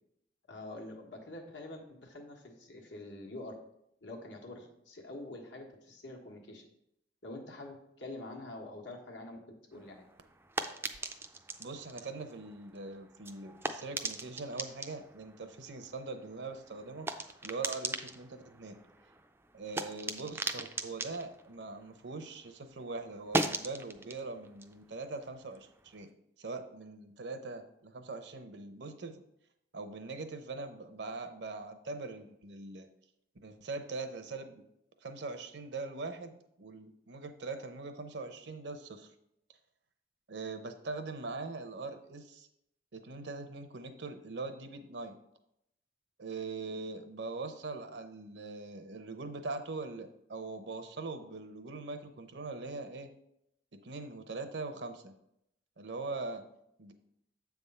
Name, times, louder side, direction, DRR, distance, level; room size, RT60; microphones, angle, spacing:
voice 1, 0.5-3.5 4.0-6.6 7.2-9.4 9.7-10.0, left 2 dB, 85° left, 1 dB, 1.4 m, -46 dB
sound 1, 9.7-22.5 22.8-26.0, right 2 dB, 15° right, 0.3 m, -40 dB
voice 2, 11.6-17.1 17.4-18.8 19.5-26.1 26.4-29.2 29.7-32.9 33.4-34.6 35.0-39.1 40.3-42.5 42.9-45.2 46.2-53.1 53.8-55.1 55.8-56.4 56.8-56.9, right 3 dB, 75° right, 7 dB, 0.7 m, -42 dB
7.5 x 3.5 x 5.5 m, 0.78 s
head